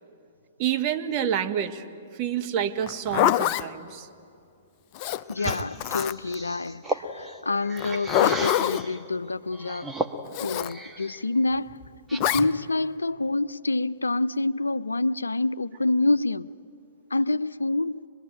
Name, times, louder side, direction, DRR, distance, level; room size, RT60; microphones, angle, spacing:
voice 1, 0.6-1.8 2.2-4.1 5.2-5.3, right 9 dB, 35° right, 1.4 m, -28 dB
Zipper (clothing), 2.8-3.7 5.0-6.4 7.8-8.8 10.3-10.7 12.2-12.5, left 12 dB, 40° left, 0.6 m, -25 dB
voice 2, 5.3-9.9 10.4-11.8 12.1-16.5 17.1-18.0, left 2 dB, 85° left, 0.5 m, -27 dB
sound 1, 5.3-9.0 9.5-11.2 11.6-12.6, right 2 dB, 5° right, 1.4 m, -35 dB
25.0 x 21.5 x 9.2 m
figure-of-eight pair, 115°, 0 cm